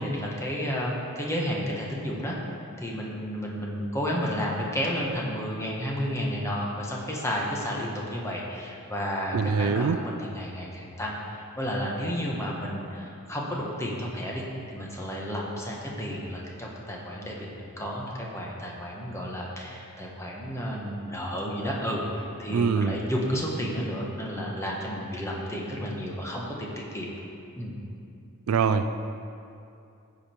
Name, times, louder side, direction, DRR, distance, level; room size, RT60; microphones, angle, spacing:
voice 1, 0.0-2.3 2.8-27.1 27.5-27.7, equal, 15° left, -3 dB, 1.3 m, -32 dB
voice 2, 9.3-10.0 22.5-23.0 28.5-28.9, right 5 dB, 70° right, 9 dB, 0.4 m, -23 dB
14.5 x 5.1 x 4.5 m, 2.6 s
head